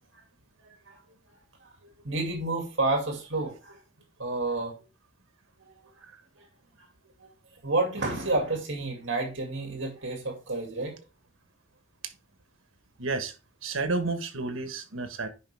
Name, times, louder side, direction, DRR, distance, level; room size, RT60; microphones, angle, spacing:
voice 1, 1.6-3.8 4.2-4.7 5.6-5.7 6.4-6.5 7.2-7.3 7.6-11.0, right 2 dB, 65° right, 1 dB, 2.5 m, -30 dB
voice 2, 13.0-13.3 13.6-15.3, right 3 dB, 85° right, 8 dB, 1.3 m, -31 dB
10.0 x 5.1 x 3.4 m, 0.32 s
head